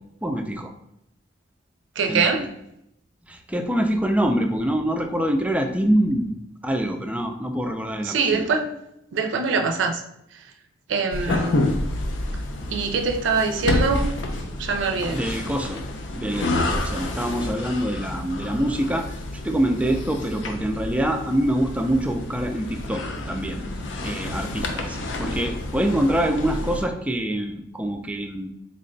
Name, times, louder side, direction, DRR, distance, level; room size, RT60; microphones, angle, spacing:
voice 1, 0.2-0.7 2.1-2.5 3.3-6.3 6.6-8.5 11.3-11.4 15.1-15.8 16.1-19.1 19.4-23.6 24.0-28.5, right 1 dB, 5° right, 4 dB, 0.3 m, -25 dB
voice 2, 2.0-2.5 8.0-8.7 9.1-10.0 10.9-11.6 12.7-14.1 14.6-15.2, right 4 dB, 85° right, 5 dB, 0.4 m, -23 dB
sound 1, 11.1-26.9, left 1 dB, 75° left, 0.5 m, -29 dB
3.8 x 2.2 x 3.7 m, 0.80 s
head